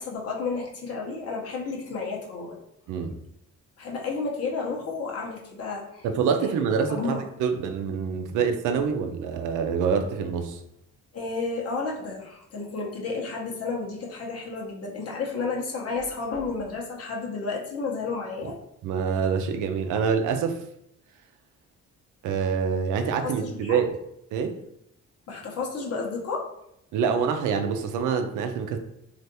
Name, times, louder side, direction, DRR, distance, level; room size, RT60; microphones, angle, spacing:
voice 1, 0.0-2.6 3.8-6.1 6.4-6.5 6.9-7.2 8.7-8.9 11.1-18.6 23.2-23.8 25.3-26.5, left 4 dB, 50° left, -2 dB, 0.8 m, -32 dB
voice 2, 6.0-10.6 18.8-20.6 22.2-23.9 24.3-24.5 26.9-28.8, right 6 dB, 85° right, 6 dB, 0.5 m, -26 dB
3.3 x 2.5 x 2.7 m, 0.77 s
cardioid pair, 90°, 30 cm